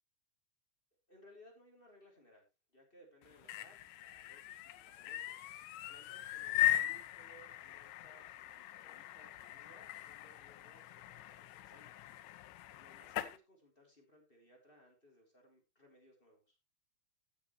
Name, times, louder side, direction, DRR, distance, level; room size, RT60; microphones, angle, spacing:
voice 1, 1.1-5.4 5.9-8.2 8.5-12.0 12.8-16.6, equal, 15° left, 1 dB, 3.3 m, -63 dB
sound 1, 3.2-13.4, left 13 dB, 85° left, 2.5 m, -39 dB
15.0 x 8.1 x 3.1 m, 0.25 s
omnidirectional pair, 3.7 m